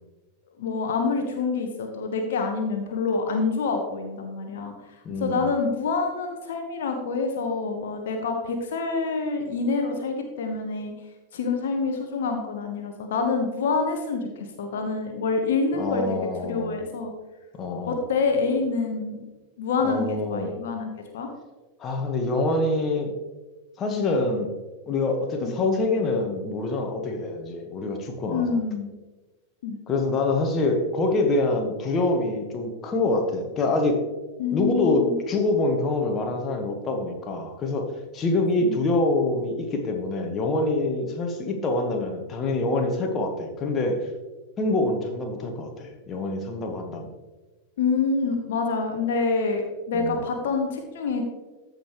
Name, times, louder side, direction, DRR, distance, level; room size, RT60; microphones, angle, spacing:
voice 1, 0.6-10.9 11.3-14.3 14.6-17.1 17.9-19.2 19.6-21.3 25.4-25.5 28.3-28.9 29.6-29.8 34.4-35.1 38.6-38.8 47.8-51.2, left 4 dB, 60° left, 4 dB, 1.1 m, -27 dB
voice 2, 5.0-5.5 15.8-16.8 17.5-18.0 19.8-20.6 21.8-23.1 23.8-24.5 24.9-28.6 29.9-34.0 34.5-37.9 38.1-44.1 44.6-47.1 49.9-50.3, left 2 dB, 25° left, 3 dB, 1.4 m, -25 dB
14.0 x 5.4 x 3.1 m, 1.2 s
figure-of-eight pair, 90°, 0 cm